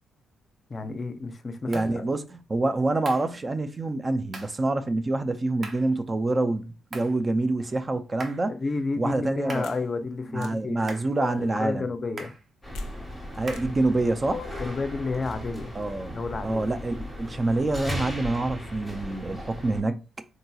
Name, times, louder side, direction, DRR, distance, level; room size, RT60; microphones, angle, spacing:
voice 1, 0.7-2.2 8.6-10.8 11.3-12.3 14.6-15.8 16.1-16.7, left 3 dB, 30° left, 0.5 m, -31 dB
voice 2, 1.6-8.5 9.0-9.7 10.3-11.9 13.4-14.5 15.7-16.2 16.4-20.0, right 2 dB, 25° right, 0.3 m, -26 dB
sound 1, 1.7-1.9 3.0-3.3 4.3-4.6 5.6-5.9 6.9-7.2 8.2-8.5 9.5-9.8 10.9-11.2 12.2-12.5 13.5-13.8, right 3 dB, 45° right, 0.7 m, -41 dB
sound 2, 9.6-9.8 10.4-10.5 11.1-11.7 12.8-12.9 13.5-13.6 14.2-14.8, left 6 dB, 85° left, 0.4 m, -40 dB
sound 3, 12.6-19.8, equal, 5° left, 1.2 m, -37 dB
3.8 x 2.7 x 2.3 m
cardioid pair, 115°, 0 cm